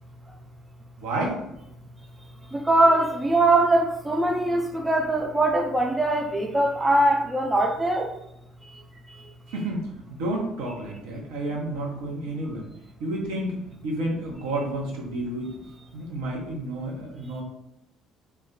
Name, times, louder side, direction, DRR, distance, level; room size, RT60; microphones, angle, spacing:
voice 1, 1.0-1.4 9.5-12.7 13.0-15.5 15.9-17.4, right 1 dB, 65° right, -2 dB, 0.6 m, -30 dB
voice 2, 2.5-8.1, right 2 dB, 15° right, 3 dB, 0.3 m, -22 dB
2.2 x 2.1 x 3.5 m, 0.83 s
figure-of-eight pair, 50°, 0 cm